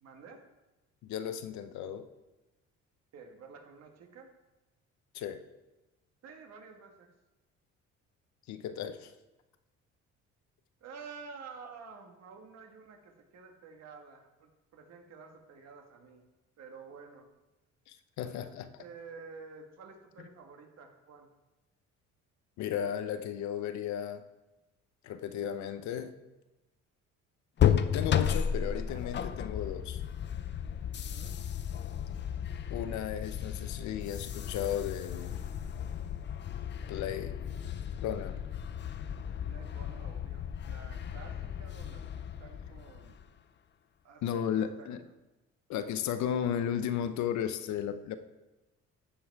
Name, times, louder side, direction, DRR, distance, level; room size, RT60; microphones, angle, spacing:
voice 1, 0.0-0.4 3.1-4.3 6.2-7.1 10.8-16.2 16.6-17.3 18.8-21.3 30.9-31.4 39.4-43.2 44.0-45.1, right 5 dB, 60° right, 3 dB, 1.7 m, -50 dB
voice 2, 1.0-2.1 5.1-5.4 8.5-9.1 17.9-18.8 22.6-24.2 25.0-26.2 27.9-30.0 32.7-35.4 36.9-37.4 38.0-38.4 44.2-45.0 45.7-48.1, left 9 dB, 75° left, 10 dB, 0.8 m, -35 dB
sound 1, 27.6-43.3, left 9 dB, 40° left, 0.5 m, -34 dB
15.5 x 5.5 x 4.7 m, 1.1 s
cardioid pair, 120°, 29 cm